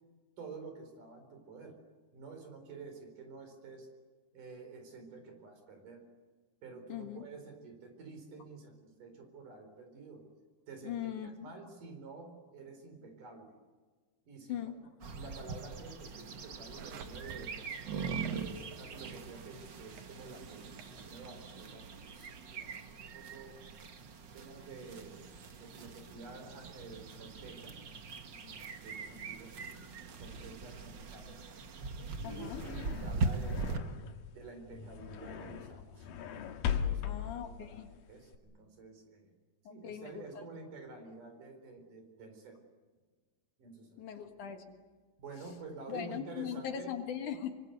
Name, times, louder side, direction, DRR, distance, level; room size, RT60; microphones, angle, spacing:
voice 1, 0.4-1.8 2.1-3.9 4.3-6.0 6.6-10.2 10.7-13.5 14.3-14.7 15.1-17.5 18.2-23.6 24.3-25.2 25.6-27.8 28.3-31.5 32.2-34.0 34.3-36.1 36.8-39.3 39.7-42.6 43.6-44.0 45.2-46.9, right 4 dB, 70° right, 5.9 m, -50 dB
voice 2, 6.9-7.2 10.8-11.5 14.5-14.8 31.9-32.7 37.0-37.9 39.8-40.4 44.0-44.6 45.9-47.5, left 9 dB, 65° left, 3.0 m, -40 dB
sound 1, 15.0-33.8, right 4 dB, 50° right, 1.5 m, -41 dB
sound 2, 16.8-29.1, right 6 dB, 85° right, 3.3 m, -57 dB
sound 3, 32.0-38.4, left 8 dB, 80° left, 3.0 m, -39 dB
26.5 x 24.0 x 8.1 m
omnidirectional pair, 3.9 m